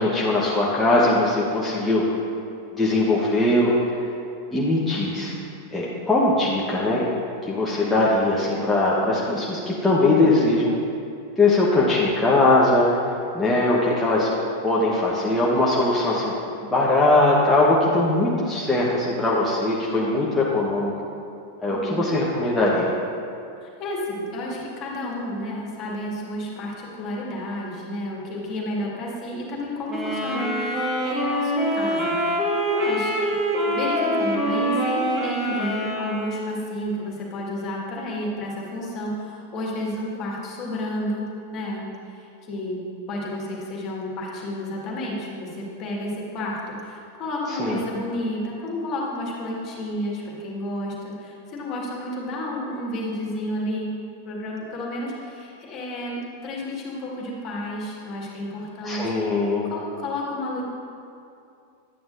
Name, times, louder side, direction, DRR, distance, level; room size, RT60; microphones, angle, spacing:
voice 1, 0.0-2.0 2.7-3.8 4.5-5.3 5.7-7.0 7.5-10.7 11.4-13.0 13.3-14.3 14.6-16.3 16.6-20.9 21.6-22.9 47.5-47.8 58.8-59.7, left 2 dB, 10° left, -6 dB, 1.1 m, -20 dB
voice 2, 21.7-22.1 23.6-42.8 43.1-53.9 54.3-59.0 59.7-60.6, left 1 dB, 35° left, -3 dB, 2.0 m, -31 dB
sound 1, 29.9-36.5, equal, 20° right, 1.5 m, -25 dB
11.5 x 9.2 x 2.6 m, 2.5 s
figure-of-eight pair, 90°, 0 cm